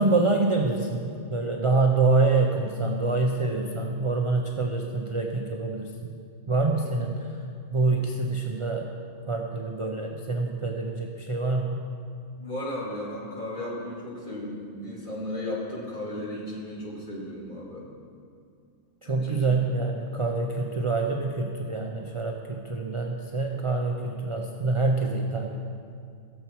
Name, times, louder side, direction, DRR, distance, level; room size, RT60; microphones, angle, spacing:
voice 1, 0.0-6.1 6.5-7.2 7.7-8.9 9.3-11.8 19.0-25.6, right 3 dB, 35° right, 1 dB, 0.6 m, -26 dB
voice 2, 12.4-17.8 19.0-19.4, left 1 dB, 40° left, -6 dB, 2.8 m, -35 dB
17.0 x 7.1 x 4.5 m, 2.3 s
omnidirectional pair, 1.3 m